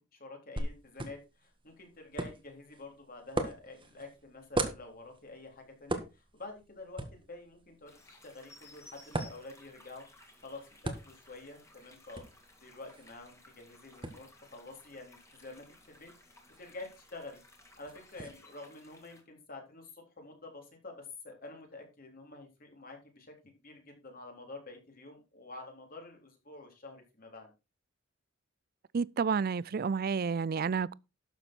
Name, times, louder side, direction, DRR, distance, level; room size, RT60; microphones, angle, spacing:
voice 1, 0.0-10.1 10.4-17.4 17.8-27.5, left 2 dB, 50° left, 3.7 m, -48 dB
sound 1, 0.6-18.3, right 2 dB, 25° right, 1.7 m, -42 dB
sound 2, 7.9-19.2, left 2 dB, 15° left, 2.7 m, -58 dB
voice 2, 28.9-30.9, right 5 dB, 50° right, 0.4 m, -30 dB
12.0 x 7.2 x 4.5 m
head